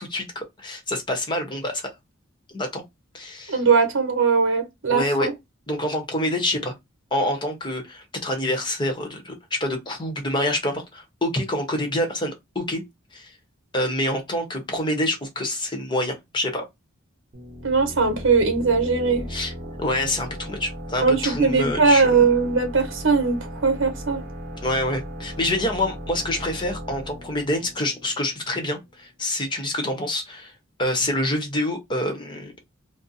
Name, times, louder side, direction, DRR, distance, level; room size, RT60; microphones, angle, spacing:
voice 1, 0.0-1.9 2.5-2.8 3.1-3.5 4.9-5.3 5.7-6.7 7.1-12.8 13.1-13.3 13.7-16.6 19.3-19.5 19.8-22.1 24.6-30.5 30.8-32.5, left 1 dB, 20° left, 0.8 m, -26 dB
voice 2, 3.5-5.3 17.6-19.3 21.0-24.2, right 4 dB, 65° right, 1.0 m, -20 dB
sound 1, 17.3-28.8, equal, 45° right, 0.9 m, -37 dB
2.6 x 2.0 x 3.9 m
head